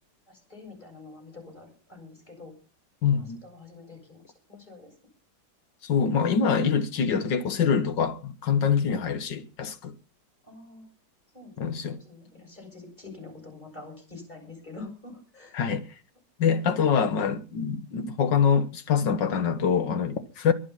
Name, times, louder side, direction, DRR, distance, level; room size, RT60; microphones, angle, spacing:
voice 1, 0.3-2.5 3.1-5.0 10.4-10.9 11.3-15.6 16.5-16.7, left 3 dB, 25° left, 7.9 m, -46 dB
voice 2, 3.0-3.4 5.8-9.9 11.6-12.0 15.6-15.8 16.4-20.5, left 6 dB, 75° left, 2.0 m, -25 dB
23.0 x 8.7 x 5.8 m
omnidirectional pair, 1.9 m